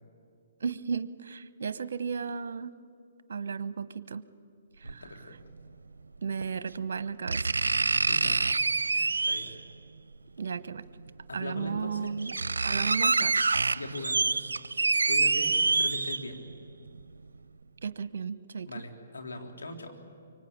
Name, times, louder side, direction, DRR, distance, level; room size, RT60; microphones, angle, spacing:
voice 1, 0.6-2.7 3.3-4.2 4.8-5.0 6.2-7.5 10.4-10.8 11.3-12.3 12.6-13.4 17.8-18.7, right 5 dB, 70° right, 15 dB, 0.9 m, -34 dB
voice 2, 4.8-5.4 7.9-8.5 8.9-9.5 11.3-12.2 13.7-14.3 14.7-16.4 18.6-20.0, left 2 dB, 90° left, 3 dB, 3.4 m, -41 dB
sound 1, 4.9-5.0 6.4-6.5 7.3-9.7 11.0-11.1 11.7-11.8 12.1-16.5 16.9-17.0, right 3 dB, 90° right, 0.6 m, -26 dB
24.5 x 24.5 x 8.7 m, 2.4 s
hypercardioid pair, 140°, 0 cm